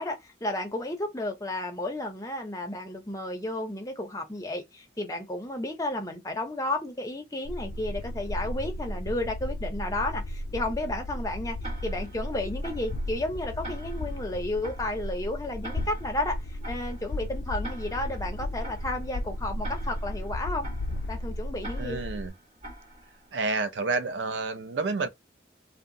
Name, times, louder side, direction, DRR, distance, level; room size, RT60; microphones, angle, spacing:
voice 1, 0.0-20.7 21.1-22.0, left 1 dB, 20° left, 0.6 m, -32 dB
sound 1, 7.5-22.3, left 1 dB, 70° left, 0.4 m, -34 dB
Tick-tock, 11.6-23.5, right 1 dB, 35° right, 1.5 m, -46 dB
voice 2, 21.8-22.3 23.3-25.1, right 3 dB, 90° right, 0.5 m, -29 dB
2.8 x 2.1 x 2.6 m
head